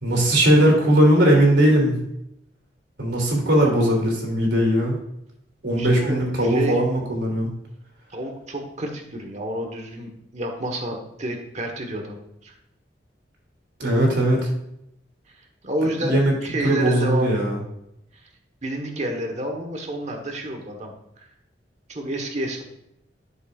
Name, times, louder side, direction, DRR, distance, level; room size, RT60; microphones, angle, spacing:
voice 1, 0.0-2.0 3.0-5.0 5.6-7.5 13.8-14.5 16.0-16.3 16.6-17.6, right 1 dB, 90° right, -2 dB, 2.9 m, -19 dB
voice 2, 5.8-6.8 8.1-12.5 15.6-17.3 18.6-21.3 21.9-22.6, right 1 dB, 40° right, 3 dB, 1.3 m, -30 dB
11.5 x 6.5 x 2.5 m, 0.79 s
head